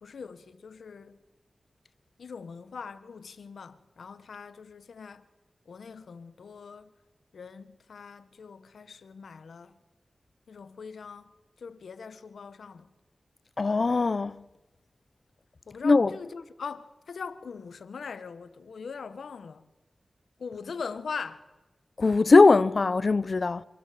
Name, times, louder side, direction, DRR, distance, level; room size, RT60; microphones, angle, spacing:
voice 1, 0.0-1.2 2.2-5.2 5.6-6.9 7.3-9.8 10.5-11.3 11.6-12.9 15.7-19.7 20.4-21.5, left 5 dB, 85° left, 1.6 m, -41 dB
voice 2, 13.6-14.4 15.8-16.1 22.0-23.6, left 3 dB, 60° left, 0.9 m, -20 dB
27.0 x 24.0 x 8.8 m
cardioid pair, 40°, 0 cm